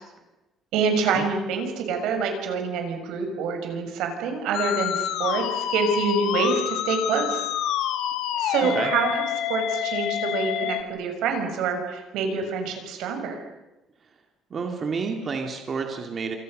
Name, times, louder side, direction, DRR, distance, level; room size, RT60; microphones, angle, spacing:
voice 1, 0.7-5.4 5.7-7.4 8.4-9.2 9.5-13.4, right 5 dB, 80° right, 5 dB, 6.4 m, -26 dB
Musical instrument, 4.5-10.8, left 10 dB, 80° left, 2.5 m, -27 dB
voice 2, 14.5-16.3, right 5 dB, 30° right, 3 dB, 2.3 m, -30 dB
29.0 x 27.5 x 6.6 m, 1.0 s
cardioid pair, 175°, 0 cm